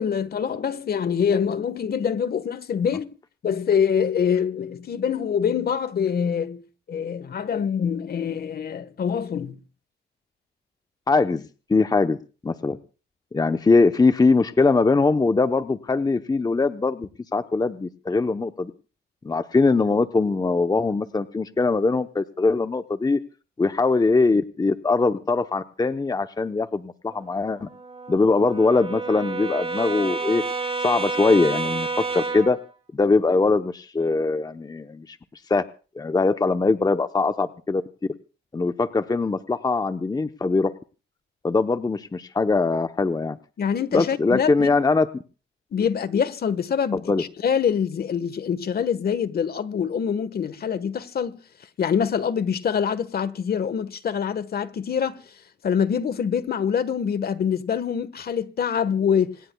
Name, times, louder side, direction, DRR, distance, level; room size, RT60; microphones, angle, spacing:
voice 1, 0.0-3.1 3.4-6.6 6.9-9.6 43.6-44.7 45.7-51.4 51.8-55.2 55.6-59.3, left 7 dB, 50° left, 1.4 m, -25 dB
voice 2, 11.1-12.2 12.4-12.8 13.3-18.7 19.2-23.2 23.6-27.7 28.1-30.4 30.8-32.6 32.9-35.2 35.5-35.6 36.0-37.8 38.5-40.7 41.4-43.4 43.9-45.1 47.1-47.2, left 3 dB, 20° left, 0.9 m, -21 dB
Brass instrument, 27.1-32.6, right 4 dB, 30° right, 7.5 m, -30 dB
27.0 x 18.5 x 2.3 m
cardioid pair, 90°, 20 cm